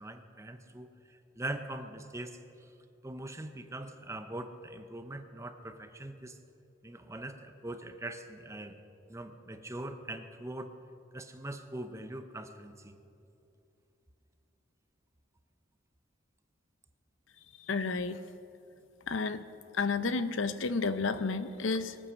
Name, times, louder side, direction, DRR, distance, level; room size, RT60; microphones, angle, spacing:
voice 1, 0.0-2.7 3.0-6.4 6.8-8.8 9.1-10.8 11.1-13.0, right 1 dB, 15° right, 8 dB, 0.7 m, -42 dB
voice 2, 17.6-18.2 19.1-19.4 19.7-22.0, left 4 dB, 80° left, 12 dB, 0.7 m, -31 dB
23.5 x 8.7 x 6.3 m, 2.7 s
head